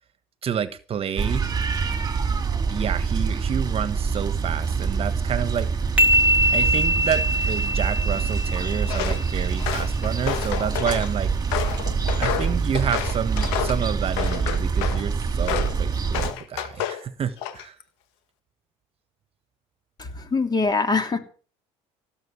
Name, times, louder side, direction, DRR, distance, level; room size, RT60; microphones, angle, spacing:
voice 1, 0.4-1.5 2.7-5.7 6.5-11.3 12.2-17.8, right 8 dB, 40° right, 1.4 m, -29 dB
sound 1, 1.2-16.3, right 5 dB, 25° right, 2.1 m, -25 dB
sound 2, 6.0-9.5, equal, 10° right, 2.5 m, -23 dB
Walk footsteps, 8.9-9.2 9.6-11.1 11.5-13.8 14.2-15.0 15.5-15.8 16.1-17.0 17.4-17.8, left 11 dB, 85° left, 1.8 m, -29 dB
voice 2, 20.0-21.2, left 4 dB, 30° left, 3.3 m, -23 dB
17.0 x 8.0 x 8.4 m
supercardioid pair, 95°, 14 cm